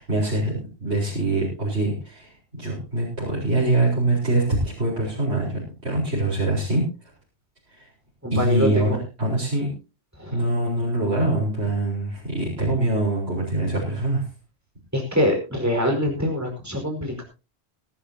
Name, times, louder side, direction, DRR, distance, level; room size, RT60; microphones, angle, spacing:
voice 1, 0.0-6.8 7.7-7.9 8.3-9.7 10.3-14.3, right 2 dB, 80° right, -5 dB, 5.0 m, -24 dB
voice 2, 8.2-9.0 10.2-10.4 14.9-17.2, equal, 15° right, 2 dB, 4.9 m, -24 dB
20.0 x 12.5 x 2.8 m, 0.31 s
omnidirectional pair, 1.1 m